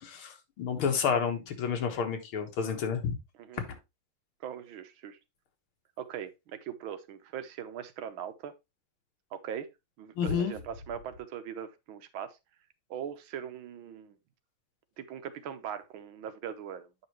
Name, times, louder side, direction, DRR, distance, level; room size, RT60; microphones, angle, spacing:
voice 1, 0.0-3.2 3.6-3.7 10.2-10.5, left 6 dB, 90° left, 2.2 m, -30 dB
voice 2, 4.4-5.2 6.0-8.5 9.3-9.7 10.0-12.4 12.9-14.2 15.0-16.9, right 9 dB, 80° right, 1.6 m, -40 dB
8.7 x 5.6 x 3.0 m
omnidirectional pair, 2.2 m